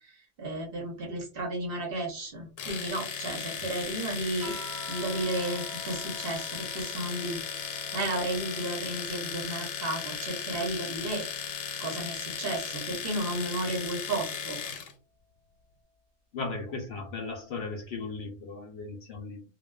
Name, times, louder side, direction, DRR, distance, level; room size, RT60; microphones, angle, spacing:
voice 1, 0.4-4.5 4.9-7.4 7.9-11.2 11.8-14.6, right 1 dB, 50° right, 0 dB, 0.9 m, -33 dB
Domestic sounds home sounds, 2.6-14.9, left 7 dB, 85° left, 1.0 m, -36 dB
sound 1, 4.4-9.2 9.7-11.4 12.6-13.1, equal, 80° right, 1.1 m, -48 dB
voice 2, 16.3-19.4, left 3 dB, 60° left, 2 dB, 0.7 m, -37 dB
2.5 x 2.3 x 2.2 m, 0.35 s
omnidirectional pair, 1.4 m